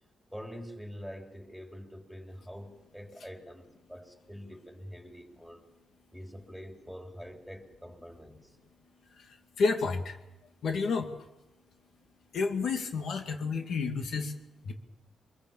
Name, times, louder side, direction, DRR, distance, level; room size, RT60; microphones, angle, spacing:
voice 1, 0.3-5.7 6.1-8.6, equal, 5° left, 3 dB, 3.4 m, -45 dB
voice 2, 9.1-10.2 10.6-11.2 12.3-14.4 14.6-14.7, left 4 dB, 70° left, 4 dB, 2.4 m, -30 dB
23.5 x 22.0 x 7.3 m, 0.94 s
cardioid pair, 120°, 0 cm